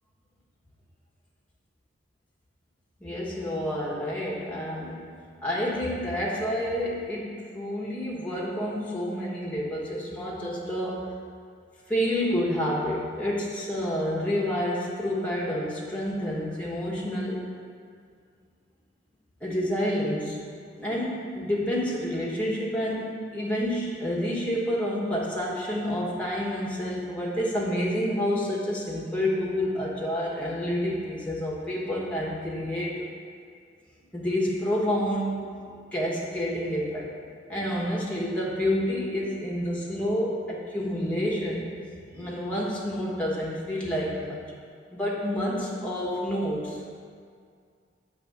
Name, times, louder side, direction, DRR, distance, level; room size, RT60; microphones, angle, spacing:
voice 1, 3.0-5.1 5.4-11.1 11.9-17.4 19.4-20.4 20.8-33.0 34.1-35.3 35.9-37.1 37.5-41.6 42.1-44.4 44.9-46.8, equal, 5° left, -5 dB, 1.1 m, -29 dB
6.9 x 3.5 x 5.8 m, 2.2 s
head